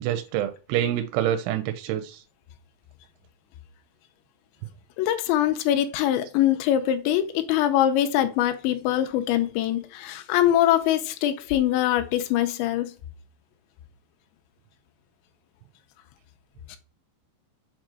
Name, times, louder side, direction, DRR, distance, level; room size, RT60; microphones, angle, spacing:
voice 1, 0.0-2.2, right 11 dB, 85° right, 2.9 m, -27 dB
voice 2, 5.0-12.9 16.7-16.8, left 12 dB, 85° left, 2.9 m, -23 dB
7.4 x 2.5 x 5.8 m
omnidirectional pair, 5.3 m